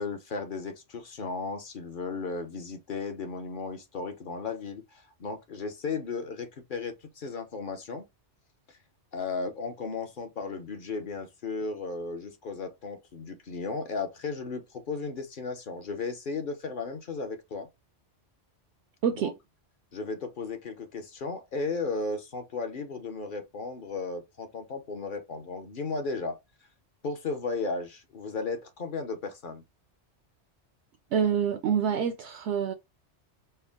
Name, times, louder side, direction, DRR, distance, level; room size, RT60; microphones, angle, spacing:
voice 1, 0.0-8.1 8.7-8.8 9.1-17.7 19.1-19.3 19.9-26.4 27.0-29.6, left 4 dB, 50° left, 0.9 m, -35 dB
voice 2, 19.0-19.3 31.1-32.7, right 7 dB, 70° right, 0.8 m, -26 dB
4.4 x 2.0 x 3.5 m
omnidirectional pair, 1.2 m